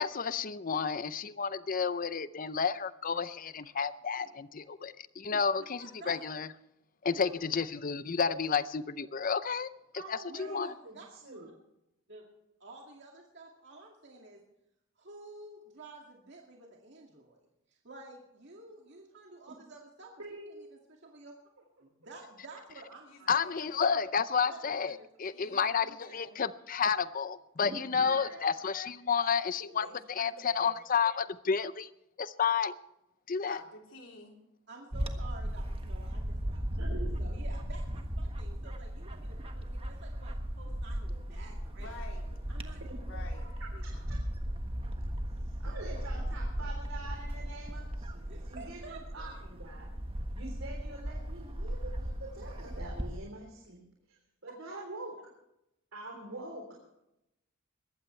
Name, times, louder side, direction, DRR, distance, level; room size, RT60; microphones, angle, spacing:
voice 1, 0.0-6.5 7.0-9.7 10.1-10.7 23.3-31.9 32.2-32.8 33.3-33.6, left 6 dB, 45° left, 14 dB, 0.6 m, -31 dB
voice 2, 5.8-6.2 7.1-7.3 10.3-11.1 11.3-11.4 12.1-12.3 12.6-14.4 15.0-17.4 17.8-20.1 20.5-20.6 21.0-21.4 21.8-23.3 24.5-25.1 28.6-28.7 34.7-36.9 37.2-41.9 42.5-43.0 43.7-44.0 48.3-49.4 54.5-54.8, right 3 dB, 60° right, 0 dB, 2.3 m, -51 dB
voice 3, 9.9-11.5 20.2-20.6 21.8-21.9 24.5-24.6 25.5-25.6 26.0-26.1 27.6-28.4 29.1-29.3 29.6-29.9 36.8-37.2 42.6-42.9 43.4-44.2 45.4-49.9 50.3-53.8 54.4-55.2 55.9-56.8, right 2 dB, 90° right, 0 dB, 3.5 m, -45 dB
voice 4, 23.1-23.9 25.3-26.4 29.7-30.7 33.4-34.4 41.8-42.6 43.0-43.5, left 3 dB, 75° left, 1 dB, 3.6 m, -51 dB
Bird / Wind, 34.9-53.2, equal, 30° right, 1.5 m, -37 dB
21.0 x 15.0 x 3.3 m, 0.85 s
head